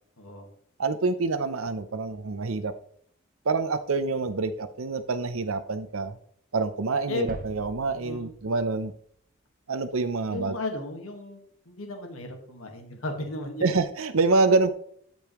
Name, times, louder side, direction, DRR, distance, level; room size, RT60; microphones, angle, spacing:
voice 1, 0.2-0.5 7.1-7.3 7.9-8.3 10.2-13.6, left 2 dB, 75° left, 3 dB, 1.7 m, -35 dB
voice 2, 0.8-2.7 3.5-6.1 6.5-8.9 9.7-10.6 13.6-14.7, right 3 dB, 75° right, 9 dB, 0.7 m, -26 dB
sound 1, 7.3-9.3, right 2 dB, 40° right, 0.9 m, -43 dB
13.0 x 5.3 x 3.1 m, 0.63 s
head